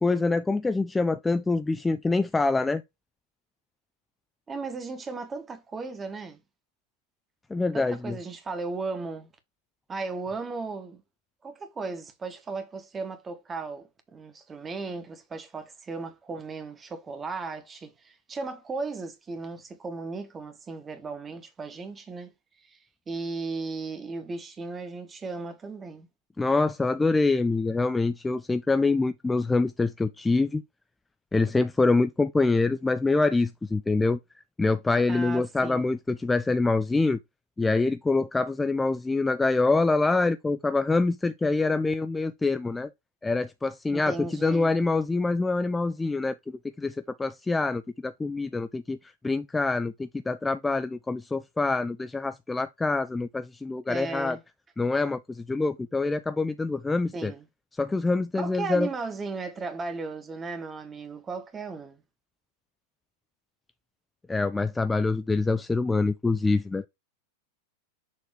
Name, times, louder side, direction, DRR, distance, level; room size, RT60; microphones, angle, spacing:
voice 1, 0.0-2.8 7.5-8.2 26.4-30.6 31.3-34.2 34.6-37.2 37.6-42.9 43.2-49.0 49.2-54.4 54.8-57.3 57.7-58.9 64.3-66.9, left 3 dB, 10° left, 0.3 m, -25 dB
voice 2, 4.5-6.4 7.7-9.3 9.9-11.0 11.4-22.3 22.6-22.8 23.1-26.1 35.1-35.9 43.9-44.7 53.9-54.4 57.1-57.4 58.3-62.0, right 4 dB, 20° right, 1.1 m, -36 dB
6.7 x 3.0 x 4.6 m
figure-of-eight pair, 90°, 0 cm